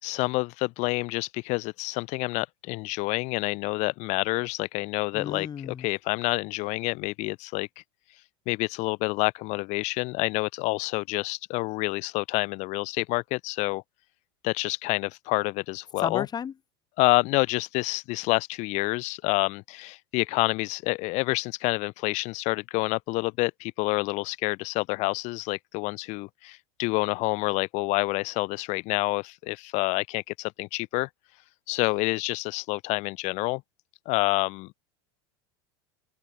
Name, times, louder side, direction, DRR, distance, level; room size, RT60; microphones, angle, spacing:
voice 1, 0.0-7.7 8.5-13.8 14.4-16.3 17.0-31.1 31.7-33.6 34.1-34.7, left 24 dB, 60° left, 5.4 m, -28 dB
voice 2, 5.1-5.9 16.0-16.5, left 7 dB, 30° left, 5.1 m, -33 dB
open air
hypercardioid pair, 95°, 14 cm